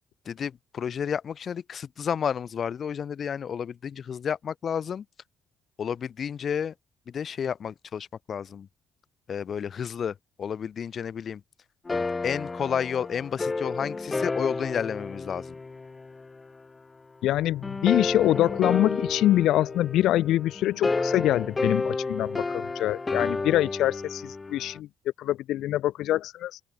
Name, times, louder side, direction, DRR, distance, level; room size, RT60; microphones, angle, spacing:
voice 1, 0.3-5.1 5.8-6.7 7.1-8.7 9.3-11.4 12.2-15.6, left 7 dB, 55° left, 3.6 m, -31 dB
sound 1, 11.9-16.5 17.6-24.8, left 3 dB, 25° left, 1.1 m, -31 dB
voice 2, 17.2-24.9 25.2-26.6, left 14 dB, 85° left, 0.7 m, -25 dB
open air
cardioid pair, 90°, 0 cm